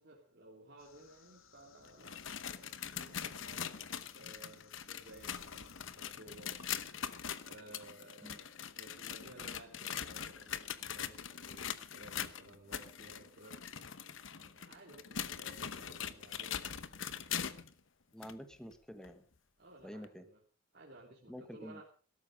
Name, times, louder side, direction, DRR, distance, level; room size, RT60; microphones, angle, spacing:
voice 1, 0.0-6.5 7.4-13.6 14.3-16.8 19.6-20.4 20.7-21.8, right 2 dB, 50° right, -3 dB, 3.0 m, -57 dB
sound 1, 0.8-5.9, left 4 dB, 85° left, 1.9 m, -62 dB
sound 2, 1.8-17.7 18.2-18.3 19.0-19.1 20.0-20.1, left 8 dB, 65° left, 1.0 m, -42 dB
voice 2, 18.1-19.2 19.8-20.3 21.3-21.8, equal, 5° left, 8 dB, 1.5 m, -48 dB
16.5 x 13.5 x 5.2 m, 0.40 s
head